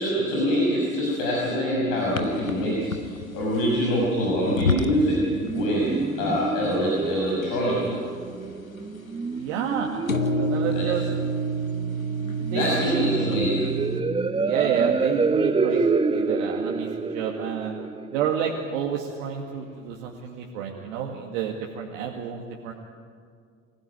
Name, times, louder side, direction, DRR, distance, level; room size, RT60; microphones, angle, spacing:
voice 1, 0.0-5.3 5.5-8.0 10.6-10.9 12.5-13.7, equal, 55° left, -4 dB, 6.3 m, -25 dB
sound 1, 2.1-5.2 5.5-6.0 6.3-6.4 6.7-7.5 7.8-8.5 10.1-14.0, right 1 dB, 90° left, 1.1 m, -28 dB
sound 2, 5.3-19.0, right 4 dB, 15° right, 1.1 m, -28 dB
voice 2, 9.4-10.0 10.4-11.0 12.4-13.1 14.4-15.8 16.1-17.8 18.1-22.7, right 8 dB, 60° right, 0 dB, 2.2 m, -30 dB
24.0 x 17.0 x 9.4 m, 2.1 s
figure-of-eight pair, 75°, 40 cm